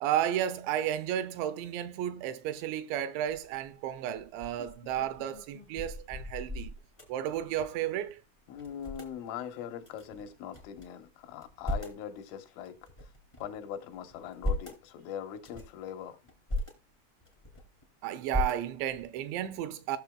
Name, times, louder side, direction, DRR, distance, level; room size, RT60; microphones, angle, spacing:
voice 1, 0.0-6.7 7.1-8.2 18.0-20.0, right 11 dB, 80° right, 2.7 m, -33 dB
sound 1, 3.3-3.7 4.2-7.9 8.2-8.3 8.5-9.1 9.8-10.9 11.3-12.1 12.6-13.6 14.1-14.8 15.3-15.8 16.3-16.7 17.2-17.8 18.3-19.0, left 1 dB, 35° left, 0.5 m, -37 dB
voice 2, 8.5-13.1 13.4-16.2, left 9 dB, 85° left, 3.7 m, -41 dB
18.5 x 6.4 x 2.3 m
omnidirectional pair, 5.5 m